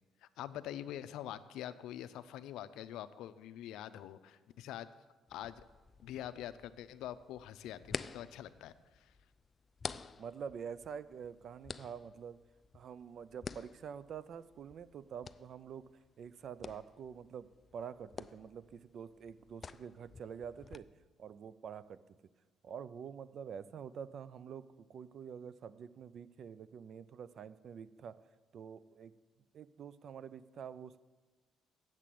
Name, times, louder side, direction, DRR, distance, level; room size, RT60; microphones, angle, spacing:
voice 1, 0.2-4.9 5.3-5.6 6.0-9.1, left 12 dB, 85° left, 13 dB, 0.5 m, -45 dB
sound 1, 5.3-20.8, left 5 dB, 30° left, 0.3 m, -50 dB
voice 2, 10.2-12.4 12.7-15.9 16.2-20.9 21.2-22.0 22.6-28.2 28.5-29.1 29.5-31.0, right 7 dB, 55° right, 16 dB, 0.4 m, -47 dB
8.4 x 7.4 x 7.6 m, 1.3 s
cardioid pair, 125°, 0 cm